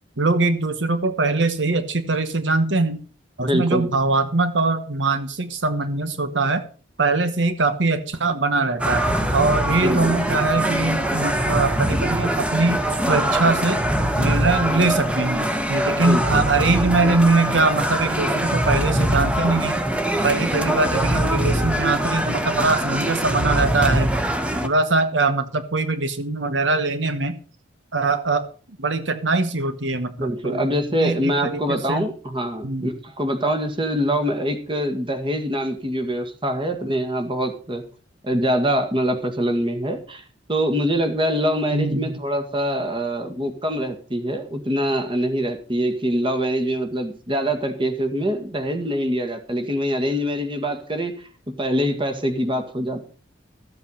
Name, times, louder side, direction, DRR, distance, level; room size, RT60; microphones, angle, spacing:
voice 1, 0.2-3.0 3.4-6.6 7.0-9.0 9.3-12.8 13.1-13.8 14.2-19.8 20.2-24.1 24.6-27.4 27.9-28.4 28.8-32.1 32.6-32.9 41.7-42.1, right 3 dB, 80° right, 11 dB, 1.2 m, -22 dB
voice 2, 3.4-3.9 9.8-10.2 16.0-16.4 30.2-37.8 38.2-40.2 40.5-51.1 51.5-53.1, equal, 30° right, 7 dB, 1.9 m, -24 dB
sound 1, 8.8-24.7, right 1 dB, 5° right, 1.1 m, -23 dB
14.0 x 8.0 x 5.6 m, 0.39 s
head